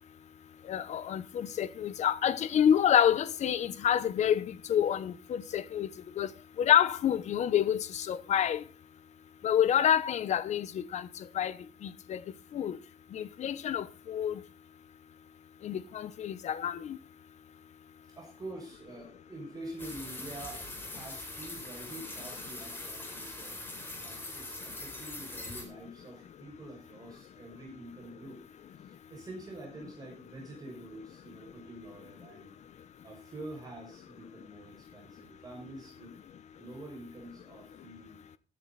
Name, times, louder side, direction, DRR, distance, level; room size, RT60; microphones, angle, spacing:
voice 1, 0.7-5.9 6.2-6.3 6.6-8.6 9.4-11.1 11.3-11.5 11.8-12.2 12.5-12.8 13.1-14.4 15.6-17.0, left 9 dB, 80° left, 1.0 m, -28 dB
voice 2, 18.2-23.6 24.0-28.4 28.7-32.5 33.0-36.1 36.6-38.2, right 1 dB, 30° right, 6.5 m, -46 dB
sound 1, 19.8-25.6, left 2 dB, 20° left, 4.3 m, -42 dB
16.5 x 10.5 x 4.2 m
wide cardioid pair, 170°, 12 cm